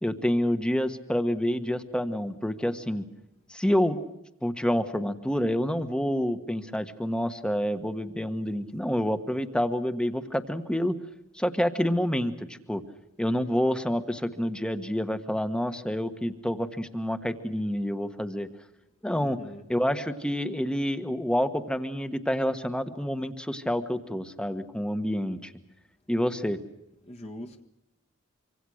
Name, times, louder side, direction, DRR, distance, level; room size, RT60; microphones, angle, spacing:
voice 1, 0.0-3.0 3.5-4.1 4.4-11.0 11.3-12.8 13.2-18.5 19.0-19.4 19.7-25.5 26.1-26.6, equal, 5° left, 1.3 m, -28 dB
voice 2, 19.2-19.6 27.0-27.6, left 1 dB, 30° left, 1.5 m, -42 dB
25.5 x 25.0 x 6.4 m
head